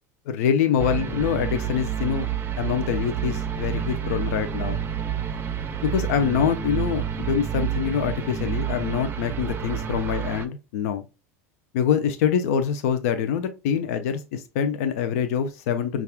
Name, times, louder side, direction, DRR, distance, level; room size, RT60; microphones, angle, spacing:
voice 1, 0.3-2.3 2.6-4.9 5.8-11.0 11.7-16.0, left 8 dB, 65° left, 0.5 m, -25 dB
sound 1, 0.8-10.5, right 9 dB, 25° right, 0.5 m, -29 dB
5.3 x 2.4 x 2.3 m
hypercardioid pair, 85°, 9 cm